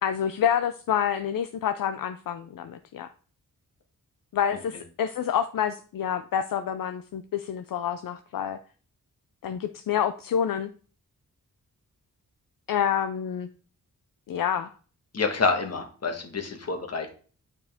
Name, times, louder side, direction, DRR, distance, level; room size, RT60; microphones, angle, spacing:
voice 1, 0.0-3.1 4.3-8.6 9.4-10.7 12.7-13.5 14.3-14.7, left 9 dB, 70° left, 10 dB, 0.5 m, -28 dB
voice 2, 15.1-17.1, left 4 dB, 45° left, 4 dB, 1.4 m, -27 dB
8.9 x 5.2 x 3.5 m, 0.40 s
wide cardioid pair, 160°, 34 cm